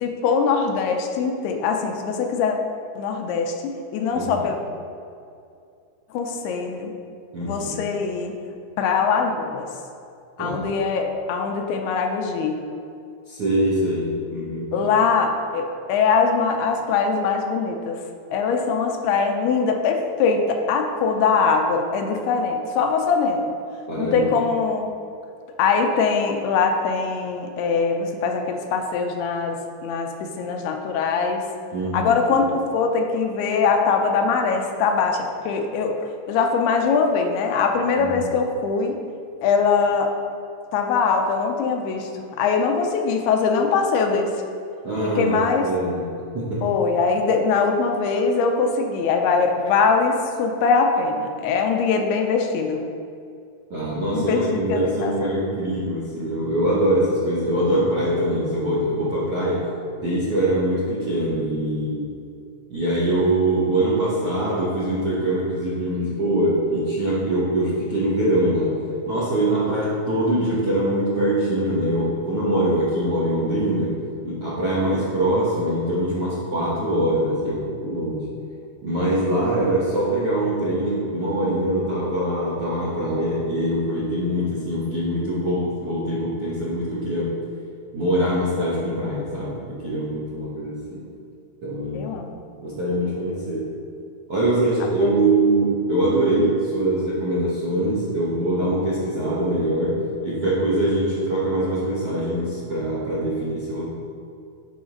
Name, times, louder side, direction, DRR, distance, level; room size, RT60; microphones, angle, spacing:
voice 1, 0.0-2.6 3.0-4.6 6.1-6.9 7.4-8.3 8.8-9.7 10.4-12.6 14.7-18.0 18.3-23.5 24.0-24.9 25.6-31.4 31.9-35.9 36.3-39.0 39.4-40.1 40.7-44.3 45.2-45.7 46.6-52.9 54.1-55.1 91.9-92.4 95.0-95.2, left 5 dB, 85° left, 3 dB, 2.7 m, -22 dB
voice 2, 4.1-4.5 7.3-7.8 10.4-10.7 13.3-14.1 14.3-14.9 23.9-24.3 31.7-32.1 38.0-38.3 44.8-46.0 46.3-46.7 53.7-59.7 60.0-62.1 62.7-68.8 69.1-74.0 74.2-78.2 78.8-87.3 87.9-91.0 91.6-92.1 92.6-93.7 94.3-103.9, right 1 dB, 70° right, -6 dB, 1.4 m, -23 dB
11.0 x 5.1 x 3.8 m, 2.5 s
omnidirectional pair, 4.6 m